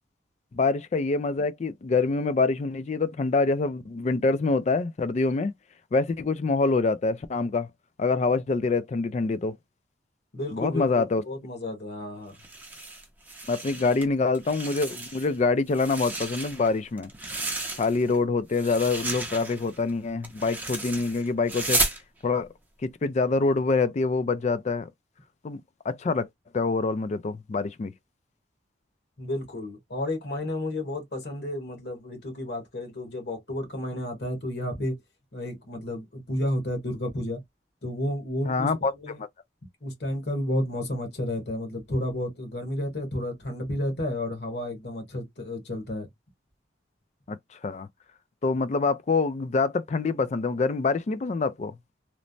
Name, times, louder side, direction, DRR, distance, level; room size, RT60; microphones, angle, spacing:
voice 1, 0.5-5.5 5.9-7.7 8.0-9.5 10.5-11.2 13.5-17.1 17.8-21.8 22.2-22.5 23.0-24.9 25.4-26.3 26.5-27.9 38.5-38.9 47.3-47.4 47.6-47.9 48.4-51.8, left 3 dB, 40° left, 0.3 m, -25 dB
voice 2, 10.3-12.4 29.2-35.0 35.3-37.4 37.8-39.2 39.8-46.1, left 1 dB, 60° left, 1.2 m, -31 dB
sound 1, 12.3-14.0 14.3-15.4 15.7-18.2 18.5-22.0, right 3 dB, 10° right, 0.5 m, -33 dB
3.1 x 2.0 x 2.5 m
head